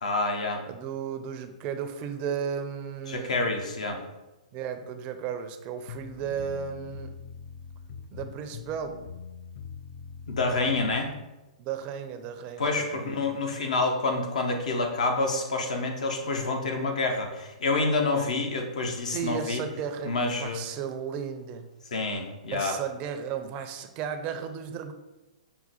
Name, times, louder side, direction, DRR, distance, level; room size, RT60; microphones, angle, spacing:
voice 1, 0.0-0.6 3.1-4.0 10.3-11.1 12.6-19.6 20.0-20.6 21.9-22.8, left 3 dB, 70° left, 4 dB, 0.8 m, -28 dB
voice 2, 0.7-3.4 4.5-7.1 8.1-9.0 11.6-13.3 19.1-21.7 22.5-24.9, right 7 dB, 35° right, 7 dB, 0.5 m, -34 dB
sound 1, 5.9-11.2, left 6 dB, 50° left, 0.4 m, -43 dB
5.6 x 2.2 x 4.1 m, 1.0 s
hypercardioid pair, 120°, 4 cm